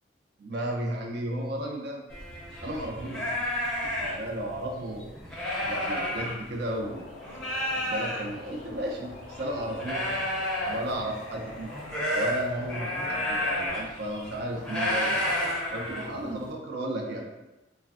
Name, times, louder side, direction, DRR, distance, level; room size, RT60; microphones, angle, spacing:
voice 1, 0.4-2.0 2.6-3.3 4.0-5.1 5.7-7.1 7.3-10.1 10.7-11.7 12.1-15.1 15.7-17.3, right 1 dB, 60° right, 1 dB, 0.5 m, -34 dB
sound 1, 2.1-6.9 7.2-16.4, left 1 dB, 5° left, 0.5 m, -31 dB
sound 2, 6.8-13.7, left 3 dB, 60° left, 0.5 m, -46 dB
3.3 x 2.1 x 2.5 m, 0.99 s
head